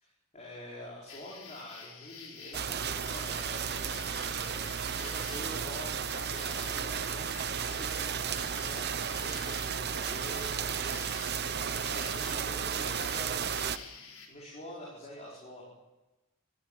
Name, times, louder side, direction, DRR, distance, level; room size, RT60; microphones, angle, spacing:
voice 1, 0.0-15.7, equal, 35° left, -4 dB, 4.9 m, -46 dB
sound 1, 1.1-14.3, left 5 dB, 85° left, 4.8 m, -49 dB
sound 2, 2.5-13.8, right 7 dB, 50° right, 1.0 m, -34 dB
25.0 x 14.0 x 9.4 m, 1.1 s
head